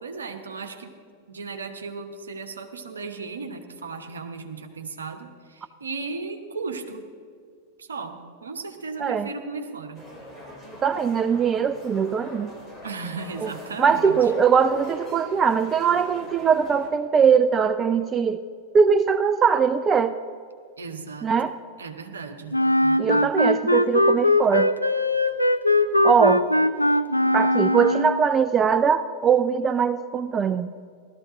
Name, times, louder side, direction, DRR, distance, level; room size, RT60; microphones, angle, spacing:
voice 1, 0.0-0.9 1.3-7.1 7.8-10.1 12.8-14.3 20.8-21.3 21.8-23.3, right 4 dB, 70° right, 5 dB, 1.1 m, -36 dB
sound 1, 9.9-16.9, equal, 5° left, 3.1 m, -42 dB
voice 2, 10.8-12.5 13.4-13.5 13.8-18.4 18.7-20.1 21.2-21.5 23.0-24.7 26.0-26.4 27.3-30.7, right 6 dB, 25° right, 12 dB, 0.4 m, -21 dB
Wind instrument woodwind instrument, 22.5-28.2, left 1 dB, 90° left, 0.4 m, -21 dB
16.0 x 13.0 x 3.8 m, 2.1 s
figure-of-eight pair, 90°, 0 cm